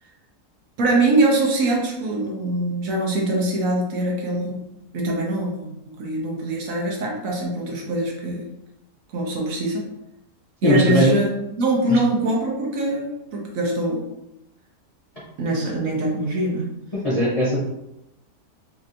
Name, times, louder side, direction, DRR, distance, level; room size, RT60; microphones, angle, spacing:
voice 1, 0.8-4.6 4.9-8.5 9.1-9.9 10.6-14.0 15.4-16.7, right 2 dB, 65° right, -1 dB, 1.2 m, -23 dB
voice 2, 10.6-11.1 11.9-12.0 17.0-17.6, equal, 35° left, -8 dB, 0.6 m, -19 dB
4.3 x 2.9 x 2.5 m, 0.90 s
omnidirectional pair, 1.7 m